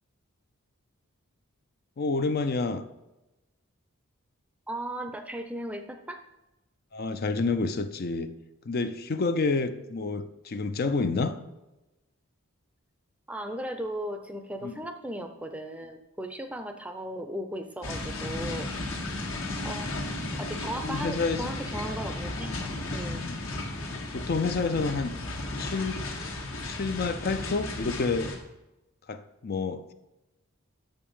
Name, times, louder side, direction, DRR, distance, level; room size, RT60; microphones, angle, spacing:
voice 1, 2.0-2.8 6.9-8.3 8.7-11.4 14.6-14.7 20.8-21.4 23.1-23.4 24.1-25.1 25.5-26.0 26.7-28.3 29.1-29.9, left 3 dB, 45° left, 9 dB, 0.4 m, -29 dB
voice 2, 4.7-6.2 11.1-11.3 13.3-18.7 19.6-19.9 20.3-22.6 22.9-23.3, right 1 dB, 5° right, 7 dB, 0.5 m, -36 dB
sound 1, 17.8-28.4, left 2 dB, 75° left, 1.6 m, -34 dB
6.9 x 5.2 x 7.2 m, 1.0 s
head